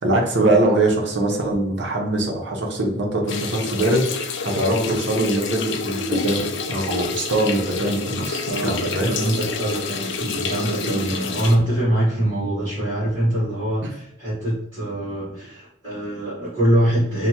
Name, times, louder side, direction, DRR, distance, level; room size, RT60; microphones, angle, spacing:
voice 1, 0.0-9.1 10.2-10.5 10.9-11.1 13.8-13.9, right 1 dB, 60° right, 0 dB, 0.7 m, -22 dB
sound 1, 3.3-11.6, left 4 dB, 60° left, 0.3 m, -28 dB
voice 2, 8.5-10.1 10.5-17.3, right 1 dB, 25° right, -11 dB, 1.5 m, -23 dB
3.4 x 2.1 x 2.8 m, 0.76 s
head